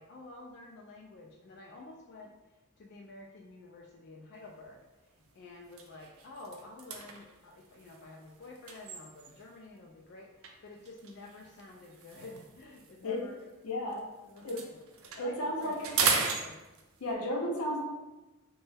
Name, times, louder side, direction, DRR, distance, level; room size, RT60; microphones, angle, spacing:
voice 1, 0.0-2.3 2.8-4.8 5.3-13.4 14.2-14.6 15.1-16.6, left 2 dB, 50° left, -1 dB, 0.3 m, -49 dB
sound 1, 4.5-4.7 5.2-5.3 5.6-9.6 10.4-14.0 14.3-17.1, right 5 dB, 65° right, 0.4 m, -37 dB
voice 2, 13.6-14.1 14.4-14.7 15.2-15.9 17.0-17.8, left 1 dB, 85° left, -1 dB, 0.7 m, -33 dB
3.1 x 2.2 x 3.3 m, 1.0 s
head